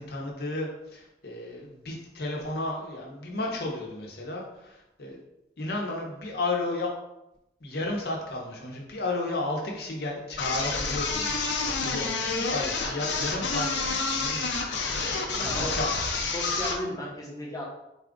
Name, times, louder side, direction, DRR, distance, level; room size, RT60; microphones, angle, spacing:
voice 1, 0.0-5.2 5.6-6.9 7.6-14.5 15.0-15.9, left 2 dB, 60° left, -1 dB, 0.9 m, -33 dB
sound 1, 10.4-16.9, left 4 dB, 80° left, 0.5 m, -29 dB
voice 2, 15.3-17.6, equal, 20° left, -3 dB, 0.9 m, -35 dB
4.1 x 2.4 x 3.6 m, 0.89 s
head